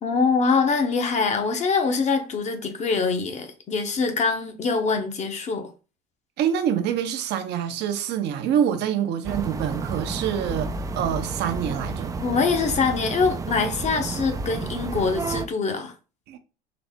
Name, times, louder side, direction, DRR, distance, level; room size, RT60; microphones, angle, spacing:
voice 1, 0.0-5.7 12.2-15.9, left 4 dB, 35° left, 0.8 m, -24 dB
voice 2, 6.4-12.1 16.3-16.4, right 9 dB, 55° right, 0.6 m, -26 dB
sound 1, 9.2-15.5, right 4 dB, 15° right, 0.3 m, -31 dB
3.8 x 2.0 x 3.5 m
supercardioid pair, 95°, 21 cm